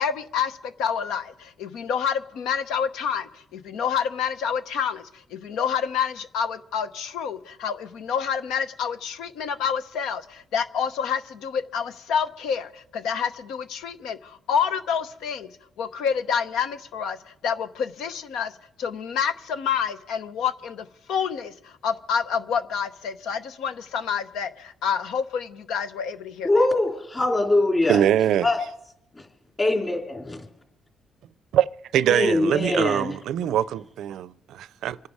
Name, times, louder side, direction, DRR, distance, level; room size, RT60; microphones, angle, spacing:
voice 1, 0.0-15.5 15.8-18.5 18.8-26.5, left 7 dB, 85° left, 0.9 m, -28 dB
voice 2, 26.4-28.0 28.4-28.6 29.2-29.3 29.6-30.4 32.1-33.1, left 2 dB, 25° left, 3.6 m, -22 dB
voice 3, 27.9-28.5 31.5-31.7 31.9-35.0, right 10 dB, 80° right, 0.5 m, -23 dB
26.5 x 10.5 x 4.9 m
cardioid pair, 90°, 0 cm